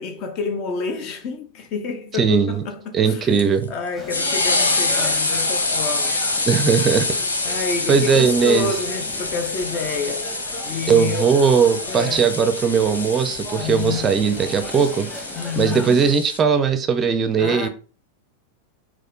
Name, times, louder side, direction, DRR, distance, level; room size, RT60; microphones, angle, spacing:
voice 1, 0.0-3.3 3.7-6.2 6.5-6.6 7.4-10.3 10.7-11.3 11.9-12.3 13.5-14.2 15.3-16.1 17.4-17.7, left 5 dB, 40° left, 0.7 m, -28 dB
voice 2, 2.2-2.6 2.9-3.7 6.5-7.6 7.9-8.7 10.9-15.1 15.6-17.7, right 6 dB, 25° right, 0.5 m, -19 dB
sound 1, 3.3-16.4, left 3 dB, 75° left, 0.6 m, -26 dB
sound 2, 4.0-16.1, equal, 5° left, 1.1 m, -37 dB
4.2 x 2.4 x 3.7 m
figure-of-eight pair, 90°, 0 cm